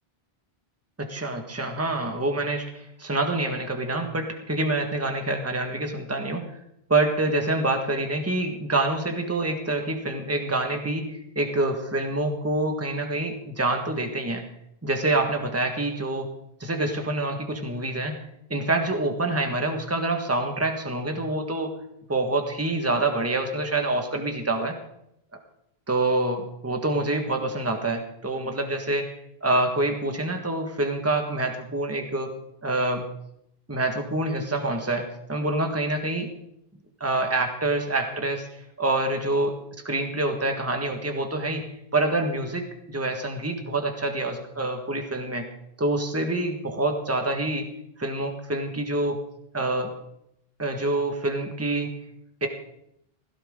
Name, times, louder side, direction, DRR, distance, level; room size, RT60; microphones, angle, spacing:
voice 1, 1.0-6.5 6.9-14.4 14.8-16.3 16.6-18.2 18.5-21.7 22.1-24.7 25.9-29.1 29.4-32.3 32.6-33.0 33.7-36.3 37.0-38.5 38.8-39.5 39.8-41.6 41.9-45.4 45.8-47.7 48.0-49.2 49.5-49.9 50.6-51.9 52.4-52.5, right 2 dB, 15° right, 4 dB, 1.6 m, -26 dB
16.5 x 16.0 x 3.8 m, 0.76 s
omnidirectional pair, 1.0 m